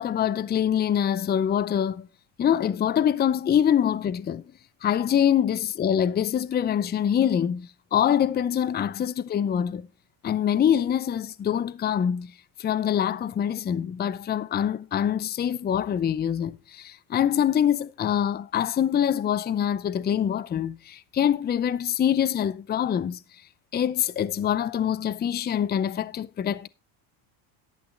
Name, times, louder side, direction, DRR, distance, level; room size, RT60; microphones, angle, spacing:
voice 1, 0.0-2.1 2.4-4.4 4.8-9.9 10.2-12.3 12.6-23.2 23.7-26.7, left 9 dB, 25° left, 0.5 m, -24 dB
11.5 x 8.6 x 4.1 m
supercardioid pair, 105°, 44 cm